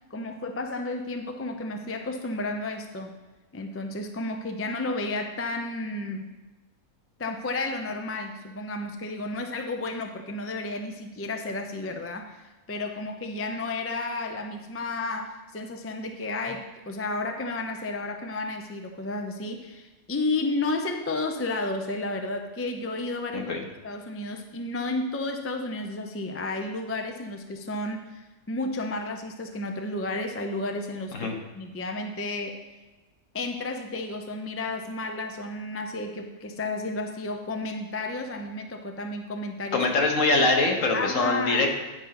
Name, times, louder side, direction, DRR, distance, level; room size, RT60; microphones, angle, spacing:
voice 1, 0.1-3.1 3.5-6.3 7.2-23.5 23.8-32.6 33.3-39.8 40.9-41.7, left 2 dB, 20° left, 4 dB, 0.3 m, -32 dB
voice 2, 39.7-41.7, left 3 dB, 60° left, 2 dB, 1.6 m, -23 dB
9.9 x 5.2 x 5.9 m, 1.2 s
omnidirectional pair, 1.5 m